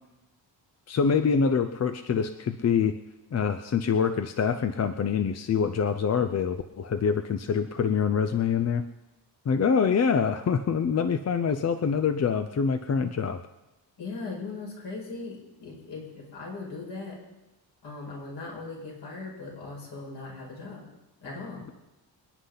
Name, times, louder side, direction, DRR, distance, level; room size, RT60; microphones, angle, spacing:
voice 1, 0.9-2.9 3.3-8.8 9.5-13.4, left 6 dB, 35° left, 9 dB, 0.6 m, -25 dB
voice 2, 14.0-17.2 17.8-20.8 21.2-21.6, left 3 dB, 65° left, -2 dB, 5.6 m, -39 dB
27.0 x 10.0 x 4.0 m, 1.0 s
wide cardioid pair, 145°, 44 cm